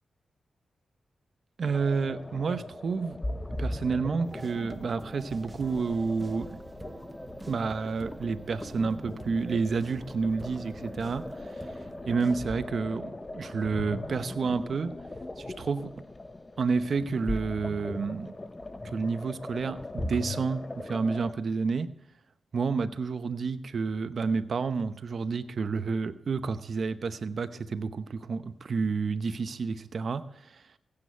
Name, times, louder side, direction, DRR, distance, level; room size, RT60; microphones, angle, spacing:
sound 1, 1.6-21.3, left 2 dB, 25° left, 0.9 m, -39 dB
voice 1, 1.6-3.2 3.5-6.6 7.5-11.7 12.1-15.0 15.4-15.9 16.6-18.4 18.8-21.9 22.5-30.7, right 4 dB, 60° right, 0.8 m, -30 dB
sound 2, 4.2-12.7, right 2 dB, 30° right, 0.7 m, -46 dB
16.0 x 8.7 x 4.5 m
cardioid pair, 50°, 0 cm